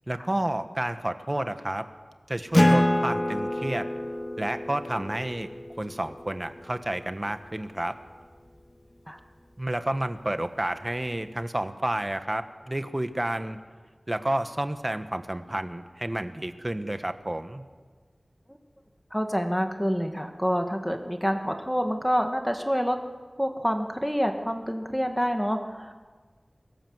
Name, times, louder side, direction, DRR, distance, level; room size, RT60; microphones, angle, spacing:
voice 1, 0.1-1.9 2.3-3.9 4.4-5.5 5.8-7.9 9.6-13.6 14.1-17.6, right 1 dB, 30° right, 9 dB, 1.4 m, -30 dB
Acoustic guitar, 2.5-7.5, left 1 dB, 35° left, 2.7 m, -27 dB
voice 2, 19.1-23.0 23.4-25.9, equal, ahead, 5 dB, 2.1 m, -27 dB
22.5 x 17.0 x 8.1 m, 1.5 s
wide cardioid pair, 55°, 0 cm